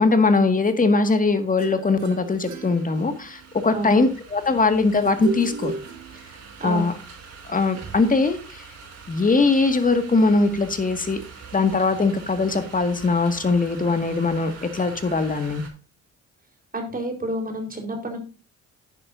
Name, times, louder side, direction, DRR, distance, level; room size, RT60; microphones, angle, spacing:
voice 1, 0.0-5.7 6.6-6.9 7.5-8.6 9.1-11.2 11.5-15.6, left 3 dB, 25° left, 8 dB, 2.0 m, -21 dB
sound 1, 1.2-15.7, right 5 dB, 55° right, 5.2 m, -44 dB
sound 2, 1.6-3.5 5.0-6.5, right 4 dB, 70° right, 2.8 m, -34 dB
voice 2, 6.6-6.9 16.7-18.2, right 1 dB, 30° right, 3 dB, 4.4 m, -29 dB
10.5 x 10.0 x 2.7 m, 0.36 s
cardioid pair, 90°, 30 cm